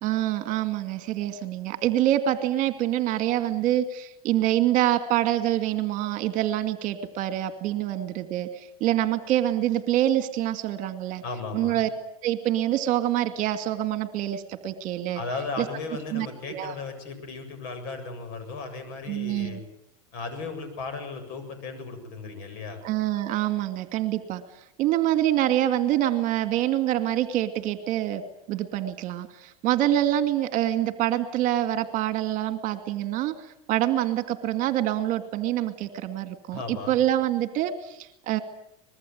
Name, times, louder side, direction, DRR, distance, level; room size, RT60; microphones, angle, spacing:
voice 1, 0.0-11.2 11.5-11.9 12.2-15.2 15.6-15.7 16.1-16.7 19.1-19.6 22.8-24.4 24.8-28.2 28.5-38.4, right 13 dB, 45° right, 10 dB, 2.3 m, -26 dB
voice 2, 11.2-11.8 15.1-19.6 20.1-22.8 36.5-37.0, left 4 dB, 55° left, 8 dB, 7.7 m, -36 dB
25.0 x 21.0 x 9.4 m, 0.78 s
supercardioid pair, 140°, 19 cm